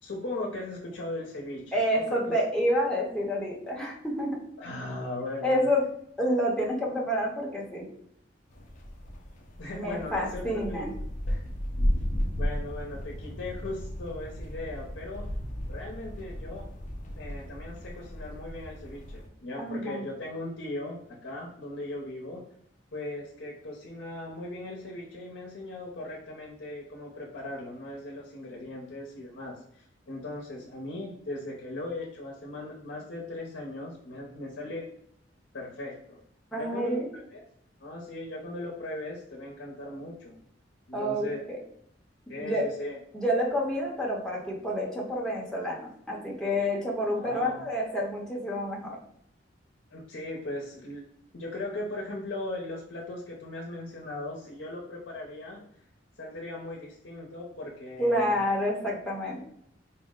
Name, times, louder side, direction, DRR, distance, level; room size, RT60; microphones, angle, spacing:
voice 1, 0.0-1.7 2.1-2.3 4.6-5.7 9.6-10.8 11.3-11.4 12.3-15.3 15.7-16.7 17.2-22.4 22.9-34.8 35.5-36.2 36.6-37.4 37.8-40.4 40.9-41.4 42.3-43.0 47.1-47.6 49.9-51.0 51.3-55.6 56.2-58.4 58.9-59.0, left 2 dB, 75° left, -2 dB, 0.7 m, -38 dB
voice 2, 1.7-4.3 5.4-5.8 6.2-7.9 9.7-10.9 19.6-20.0 36.5-37.1 40.9-41.6 42.4-42.7 43.1-45.8 46.1-49.0 58.0-59.4, equal, 5° left, -3 dB, 0.8 m, -28 dB
sound 1, 8.5-19.3, equal, 45° left, 0.5 m, -34 dB
4.3 x 2.1 x 3.6 m, 0.70 s
head